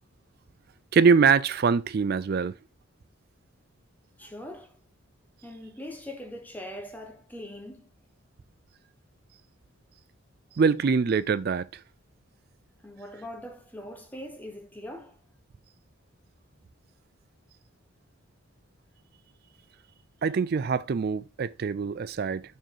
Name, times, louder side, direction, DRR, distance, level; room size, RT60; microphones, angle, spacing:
voice 1, 0.9-2.6 10.6-11.7 20.2-22.4, right 5 dB, 45° right, 0.3 m, -23 dB
voice 2, 4.2-4.8 5.4-7.9 12.8-15.2, left 1 dB, 10° left, 1.3 m, -41 dB
6.2 x 4.6 x 4.8 m
head